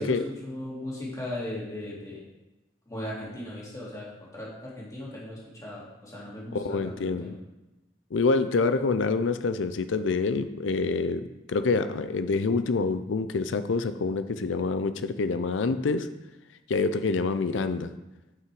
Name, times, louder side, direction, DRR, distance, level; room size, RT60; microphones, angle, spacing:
voice 1, 0.0-2.2 2.9-7.3, left 1 dB, 20° left, -6 dB, 2.6 m, -37 dB
voice 2, 6.5-7.4 8.1-11.2 11.5-16.1 16.7-17.9, left 4 dB, 90° left, 11 dB, 0.5 m, -26 dB
7.9 x 5.8 x 4.8 m, 1.0 s
head